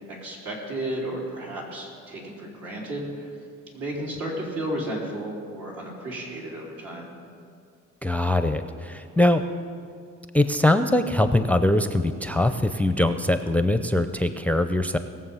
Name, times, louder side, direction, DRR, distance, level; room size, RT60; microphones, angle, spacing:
voice 1, 0.2-3.3 3.7-7.1, right 1 dB, 75° right, -4 dB, 4.0 m, -33 dB
voice 2, 8.0-9.4 10.3-15.0, left 1 dB, 5° left, 9 dB, 0.5 m, -22 dB
19.5 x 7.3 x 5.6 m, 2.3 s
cardioid pair, 90°, 30 cm